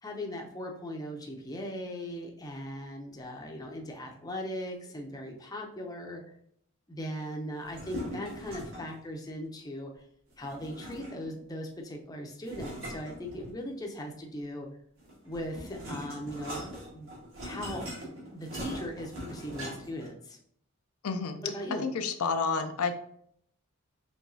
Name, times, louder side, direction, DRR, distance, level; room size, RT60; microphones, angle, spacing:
voice 1, 0.0-6.2 6.9-10.0 10.4-14.7 15.2-17.1 17.4-17.9 18.3-20.4 21.4-21.9, equal, 15° left, 1 dB, 0.6 m, -39 dB
sound 1, 7.6-9.0 10.4-11.4 12.4-13.8 15.0-20.1, equal, 60° right, 1.8 m, -41 dB
voice 2, 21.0-21.4 21.8-22.9, left 5 dB, 85° left, 7 dB, 0.5 m, -30 dB
4.7 x 3.4 x 2.7 m, 0.67 s
head